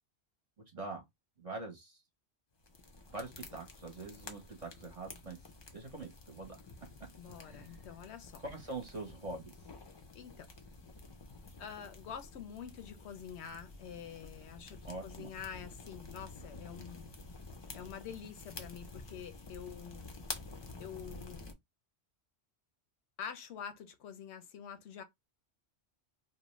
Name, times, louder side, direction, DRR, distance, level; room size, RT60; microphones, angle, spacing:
voice 1, 0.7-1.0 1.4-2.0 3.1-5.4 5.7-6.6 7.4-7.9 8.4-9.5 14.8-15.3, right 2 dB, 40° right, 0.6 m, -44 dB
sound 1, 2.6-21.5, left 3 dB, 45° left, 0.3 m, -50 dB
voice 2, 7.2-8.4 10.1-10.5 11.6-17.1 17.7-20.1 20.8-21.5 23.2-25.0, left 8 dB, 85° left, 0.9 m, -47 dB
2.5 x 2.1 x 2.9 m
omnidirectional pair, 1.1 m